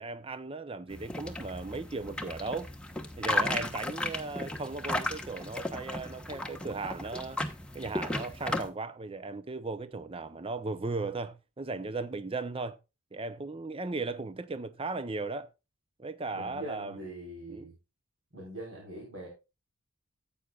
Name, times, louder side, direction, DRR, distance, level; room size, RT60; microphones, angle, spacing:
voice 1, 0.0-2.7 3.2-7.4 7.7-12.8 13.1-15.5 16.0-17.1 17.5-17.7, right 3 dB, 25° right, 0.6 m, -37 dB
sound 1, 0.9-8.7, left 2 dB, 5° left, 1.1 m, -35 dB
voice 2, 16.3-17.7 18.3-19.3, right 1 dB, 60° right, 4.2 m, -43 dB
14.5 x 8.6 x 2.4 m
head